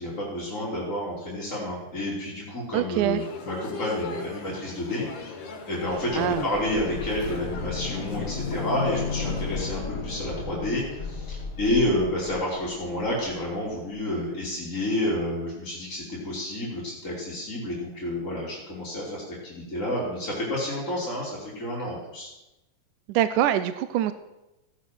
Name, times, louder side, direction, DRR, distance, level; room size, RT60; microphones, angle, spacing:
voice 1, 0.0-22.3, left 1 dB, 20° left, -7 dB, 3.3 m, -30 dB
voice 2, 2.7-3.2 6.1-6.5 23.1-24.1, right 12 dB, 80° right, 12 dB, 1.9 m, -24 dB
sound 1, 3.2-9.8, left 4 dB, 65° left, 3.1 m, -38 dB
sound 2, 6.0-13.7 13.9-14.0, left 4 dB, 45° left, 1.4 m, -34 dB
15.5 x 10.0 x 6.2 m, 0.97 s
omnidirectional pair, 4.1 m